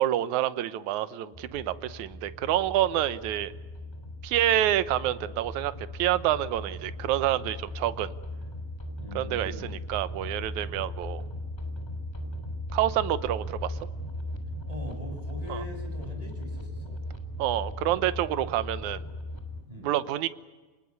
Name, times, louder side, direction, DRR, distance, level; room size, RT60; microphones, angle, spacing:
voice 1, 0.0-3.5 4.2-8.1 9.2-11.2 12.7-13.8 15.5-15.6 17.4-19.0 19.8-20.3, right 12 dB, 70° right, 14 dB, 2.2 m, -27 dB
sound 1, 1.3-19.6, left 1 dB, 10° left, 2.9 m, -38 dB
voice 2, 9.0-9.7 14.7-17.0 19.7-19.9, equal, 10° right, 2 dB, 7.2 m, -42 dB
28.5 x 20.0 x 9.7 m, 1.3 s
omnidirectional pair, 3.7 m